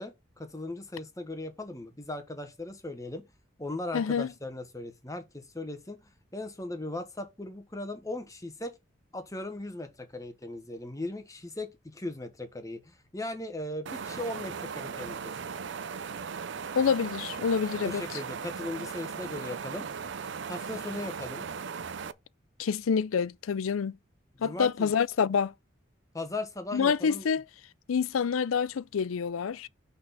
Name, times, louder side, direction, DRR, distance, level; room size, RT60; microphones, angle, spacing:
voice 1, 0.0-3.2 3.6-6.0 6.3-8.7 9.1-15.3 17.8-19.9 20.5-21.5 24.4-24.9 26.1-27.3, left 2 dB, 15° left, 1.2 m, -38 dB
voice 2, 3.9-4.3 16.7-18.0 22.6-23.9 24.4-25.5 26.7-27.4 27.9-29.7, left 6 dB, 90° left, 0.4 m, -27 dB
sound 1, 13.9-22.1, right 6 dB, 60° right, 0.5 m, -38 dB
6.1 x 4.2 x 5.8 m
head